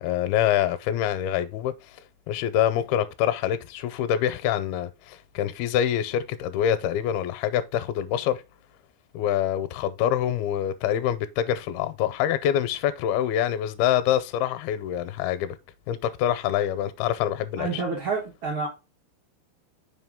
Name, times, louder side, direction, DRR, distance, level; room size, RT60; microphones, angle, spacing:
voice 1, 0.0-2.0 2.3-8.4 9.1-15.6 15.9-17.8, left 10 dB, 80° left, 2.4 m, -25 dB
voice 2, 17.6-18.7, right 4 dB, 75° right, 1.1 m, -28 dB
5.9 x 4.9 x 3.5 m
omnidirectional pair, 4.5 m